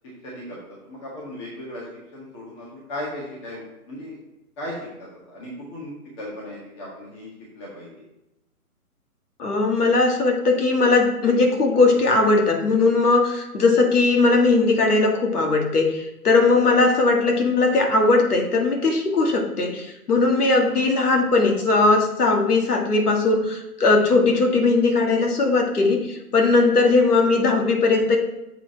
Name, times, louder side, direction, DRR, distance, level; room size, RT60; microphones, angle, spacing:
voice 1, 0.2-0.6 0.8-1.8 2.1-3.6 3.9-4.2 4.6-4.7 5.3-7.3 7.5-7.9 16.7-16.8 20.6-20.7 27.1-27.2, left 1 dB, 20° left, -5 dB, 1.5 m, -36 dB
voice 2, 9.4-28.2, left 3 dB, 80° left, 2 dB, 1.9 m, -19 dB
7.1 x 5.2 x 4.5 m, 0.94 s
hypercardioid pair, 165°, 45 cm